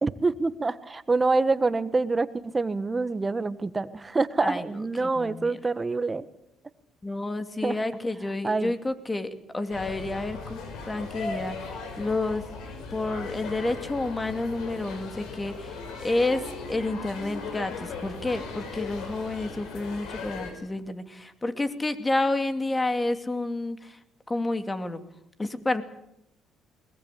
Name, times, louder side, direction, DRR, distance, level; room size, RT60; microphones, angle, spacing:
voice 1, 0.0-6.3 7.6-7.8 8.4-8.7, right 3 dB, 25° right, 14 dB, 1.4 m, -26 dB
voice 2, 4.4-5.6 7.0-12.4 12.9-24.0 24.3-25.0 25.4-25.8, left 2 dB, 20° left, 9 dB, 2.6 m, -30 dB
sound 1, 9.7-20.5, left 4 dB, 75° left, 5.6 m, -38 dB
21.5 x 20.5 x 8.5 m, 0.81 s
supercardioid pair, 80°, 0 cm